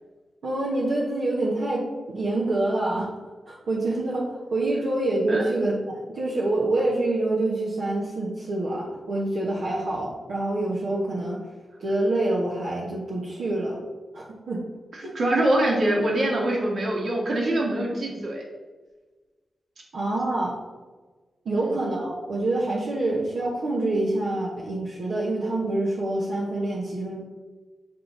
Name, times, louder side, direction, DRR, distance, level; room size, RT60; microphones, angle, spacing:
voice 1, 0.4-3.1 3.5-11.4 11.8-13.8 14.1-14.6 19.9-20.6 21.4-27.2, right 2 dB, 80° right, -6 dB, 1.1 m, -26 dB
voice 2, 14.9-18.4 21.5-21.7, right 1 dB, 60° right, -2 dB, 1.6 m, -24 dB
6.6 x 3.7 x 3.9 m, 1.3 s
cardioid pair, 75°, 0 cm